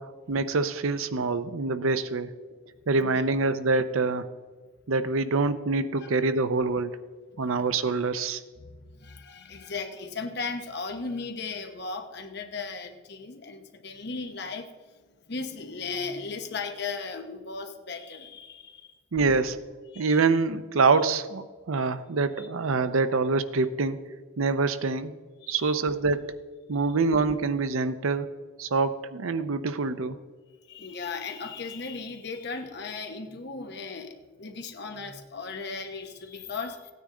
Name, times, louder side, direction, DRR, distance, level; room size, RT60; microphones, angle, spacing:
voice 1, 0.3-2.3 2.9-4.3 4.9-7.0 7.4-8.4 19.1-19.6 20.0-24.0 24.4-25.1 25.5-26.3 26.7-28.3 28.6-30.2, right 4 dB, 75° right, 12 dB, 0.6 m, -25 dB
voice 2, 8.6-14.9 15.3-18.9 19.9-20.3 22.4-22.5 25.4-25.8 30.7-36.9, left 4 dB, 50° left, 6 dB, 0.9 m, -37 dB
15.5 x 9.4 x 3.7 m, 1.4 s
head